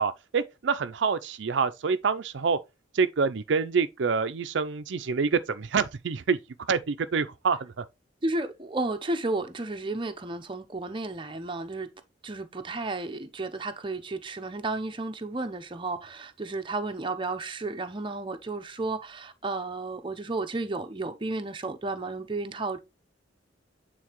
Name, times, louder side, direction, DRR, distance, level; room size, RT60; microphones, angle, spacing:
voice 1, 0.0-2.6 2.9-6.4 6.7-7.8, right 5 dB, 70° right, 0.5 m, -26 dB
voice 2, 8.2-11.9 12.2-22.8, right 2 dB, 25° right, 0.7 m, -32 dB
8.5 x 3.8 x 3.0 m
head